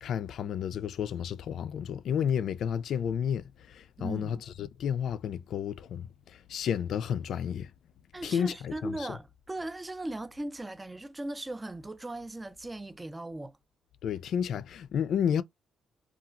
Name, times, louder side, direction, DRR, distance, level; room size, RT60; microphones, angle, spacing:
voice 1, 0.0-7.7 8.2-9.0 14.0-15.4, left 8 dB, 70° left, 0.3 m, -31 dB
voice 2, 4.0-4.4 8.1-13.6, right 1 dB, 15° right, 0.4 m, -38 dB
2.9 x 2.4 x 2.4 m
cardioid pair, 90°, 0 cm